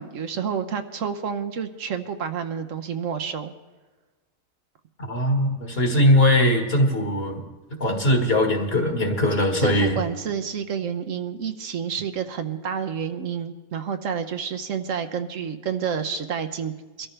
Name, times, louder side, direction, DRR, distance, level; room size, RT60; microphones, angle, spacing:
voice 1, 0.0-3.5 9.6-17.1, right 7 dB, 70° right, 8 dB, 1.1 m, -29 dB
voice 2, 5.1-7.4 7.8-10.0, left 1 dB, 45° left, 3 dB, 1.9 m, -20 dB
23.0 x 13.5 x 3.4 m, 1.2 s
omnidirectional pair, 1.4 m